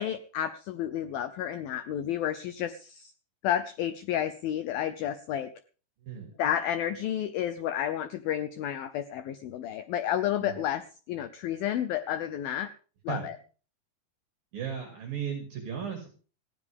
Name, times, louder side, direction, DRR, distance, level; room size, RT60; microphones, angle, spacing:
voice 1, 0.0-3.1 3.4-5.5 6.4-12.7 13.0-13.4, left 10 dB, 85° left, 12 dB, 2.1 m, -31 dB
voice 2, 6.0-6.3 10.4-10.6 13.1-13.3 14.5-16.1, right 7 dB, 55° right, 3 dB, 4.4 m, -36 dB
19.5 x 15.0 x 3.6 m, 0.38 s
omnidirectional pair, 5.2 m